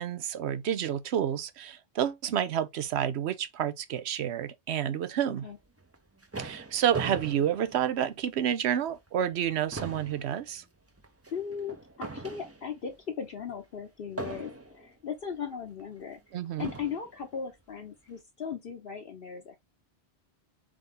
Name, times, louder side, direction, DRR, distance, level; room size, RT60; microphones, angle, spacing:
voice 1, 0.0-5.5 6.4-10.6 16.3-16.7, right 9 dB, 75° right, 0.9 m, -29 dB
sound 1, 5.8-8.5 8.9-9.1 9.4-12.9 14.2-14.9 15.8-15.9 16.6-17.1, right 3 dB, 20° right, 0.5 m, -40 dB
voice 2, 11.3-16.2 16.6-19.6, left 7 dB, 60° left, 1.0 m, -38 dB
4.0 x 3.8 x 3.5 m
omnidirectional pair, 1.1 m